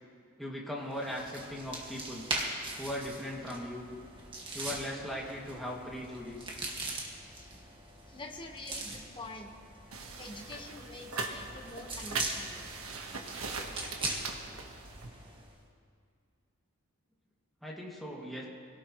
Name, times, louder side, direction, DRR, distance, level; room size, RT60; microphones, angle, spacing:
voice 1, 0.4-2.3 2.8-3.9 4.5-6.5 17.6-18.5, equal, ahead, -4 dB, 2.3 m, -39 dB
sound 1, 0.9-15.6, right 2 dB, 25° right, 1.9 m, -41 dB
voice 2, 7.2-7.7 8.1-9.6 10.0-12.7, left 2 dB, 25° left, 2 dB, 1.4 m, -46 dB
sound 2, 9.9-15.1, right 3 dB, 80° right, 1.5 m, -40 dB
25.5 x 17.5 x 3.2 m, 2.3 s
head